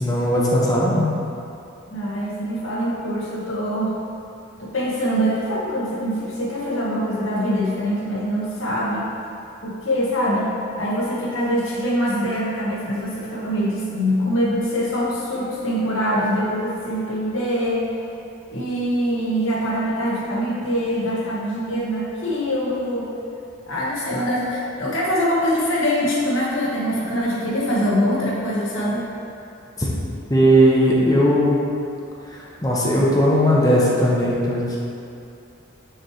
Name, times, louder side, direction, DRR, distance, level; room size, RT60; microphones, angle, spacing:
voice 1, 0.0-1.1 29.8-29.9 30.3-31.6 32.3-34.8, equal, 20° left, -4 dB, 0.8 m, -18 dB
voice 2, 1.9-4.0 4.6-9.1 9.6-10.5 10.8-17.9 18.5-23.1 23.7-29.1, equal, 85° left, -6 dB, 1.4 m, -23 dB
6.4 x 3.2 x 4.8 m, 2.6 s
head